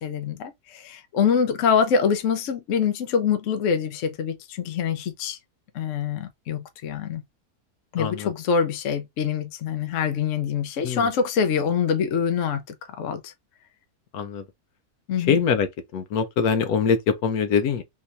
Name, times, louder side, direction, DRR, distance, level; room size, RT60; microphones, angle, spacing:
voice 1, 0.0-5.4 5.7-7.2 7.9-13.3 15.1-15.4, left 6 dB, 60° left, 1.0 m, -25 dB
voice 2, 8.0-8.3 10.8-11.1 14.1-14.4 15.3-15.7 15.9-17.8, left 6 dB, 80° left, 1.2 m, -23 dB
3.7 x 2.9 x 2.5 m
omnidirectional pair, 1.6 m